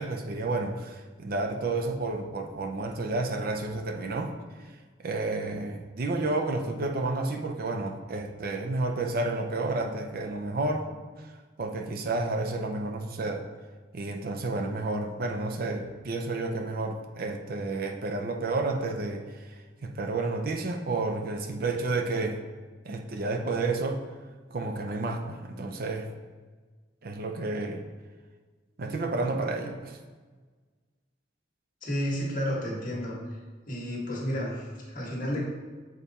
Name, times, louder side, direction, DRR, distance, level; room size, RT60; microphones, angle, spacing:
voice 1, 0.0-4.3 4.6-4.7 5.0-10.9 11.2-11.3 11.6-13.4 13.9-22.4 22.8-24.0 24.5-26.1 27.0-27.8 28.8-30.0, right 2 dB, 55° right, 4 dB, 0.6 m, -31 dB
voice 2, 31.8-33.2 33.7-35.4, equal, 50° left, -3 dB, 1.6 m, -31 dB
7.3 x 4.1 x 4.2 m, 1.4 s
head